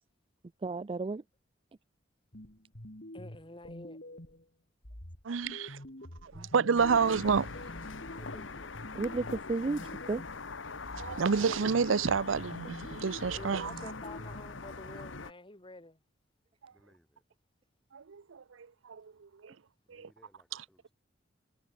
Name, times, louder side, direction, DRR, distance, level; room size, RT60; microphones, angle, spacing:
voice 1, 0.6-1.2 6.4-6.5 9.0-10.2, right 3 dB, 30° right, 0.4 m, -33 dB
sound 1, 2.3-4.5 4.8-10.5 10.8-14.4, left 1 dB, 55° left, 4.0 m, -47 dB
voice 2, 3.1-4.0 13.3-16.0, left 2 dB, 25° left, 4.8 m, -48 dB
voice 3, 5.2-5.8 6.2-7.6 10.7-13.7 17.9-19.5 19.9-20.1 20.5-20.6, right 5 dB, 90° right, 0.6 m, -30 dB
sound 2, 6.8-15.3, left 4 dB, 80° left, 1.4 m, -43 dB
voice 4, 8.1-8.7 16.7-17.2 19.9-20.9, equal, 5° left, 7.6 m, -59 dB
head